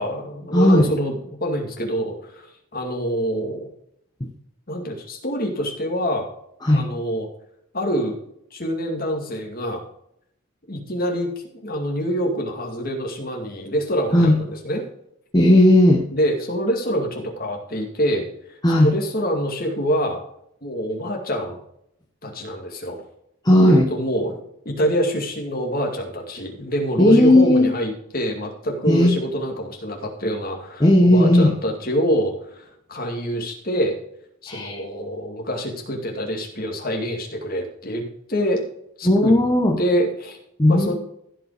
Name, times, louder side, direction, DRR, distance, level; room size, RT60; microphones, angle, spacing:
voice 1, 0.0-2.5 2.7-3.7 4.7-6.3 6.7-7.3 7.7-8.2 8.5-9.8 10.7-11.3 11.6-14.8 16.1-18.3 18.8-20.2 20.6-21.6 22.2-23.0 23.6-24.4 24.6-33.9 34.4-38.0 38.3-38.6 39.0-39.3 39.8-40.4 40.7-40.9, equal, 40° left, 1 dB, 2.5 m, -25 dB
voice 2, 0.5-0.9 6.6-6.9 14.1-14.4 15.3-16.0 18.6-18.9 23.4-23.9 27.0-27.7 28.9-29.2 30.8-31.5 34.5-34.8 39.0-39.8 40.6-40.9, left 1 dB, 20° left, -1 dB, 1.0 m, -15 dB
15.0 x 5.4 x 5.0 m, 0.74 s
head